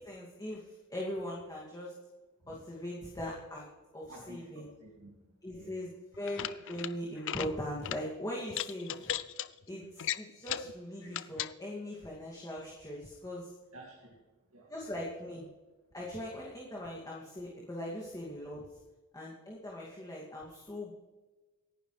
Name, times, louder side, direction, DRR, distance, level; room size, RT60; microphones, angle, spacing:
voice 1, 0.0-1.9 2.5-3.6 3.9-4.7 5.4-9.2 9.7-13.5 14.7-15.5 15.9-18.8 19.1-20.9, left 1 dB, 15° left, -5 dB, 2.5 m, -40 dB
voice 2, 4.1-5.7 13.7-14.2 14.5-14.7, right 1 dB, 75° right, -2 dB, 2.7 m, -52 dB
sound 1, 6.1-6.9 7.2-7.5 7.8-8.0 8.5-9.5 10.0-10.7 11.1-11.5, left 11 dB, 60° left, 0.5 m, -36 dB
27.0 x 11.0 x 3.4 m, 1.2 s
head